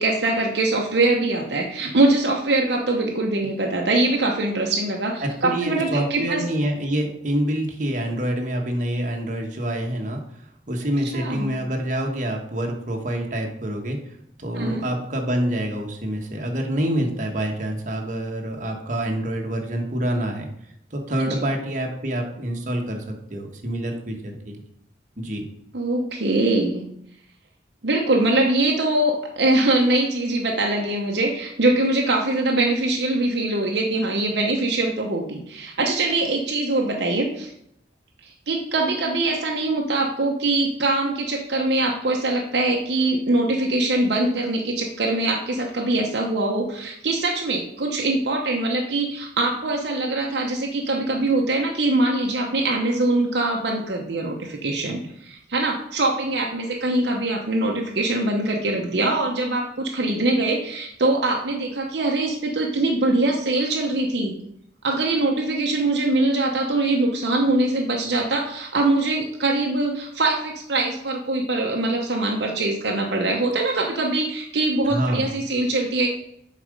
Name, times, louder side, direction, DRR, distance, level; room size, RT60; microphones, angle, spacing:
voice 1, 0.0-6.4 11.0-11.5 14.6-14.8 21.3-21.4 25.7-26.8 27.8-37.5 38.2-64.3 64.8-76.1, right 2 dB, 65° right, 0 dB, 0.8 m, -23 dB
voice 2, 5.2-10.2 10.7-14.0 14.4-20.5 20.9-24.6 25.2-25.4 74.8-75.3, right 1 dB, 45° right, 2 dB, 1.2 m, -26 dB
7.2 x 4.2 x 5.1 m, 0.75 s
head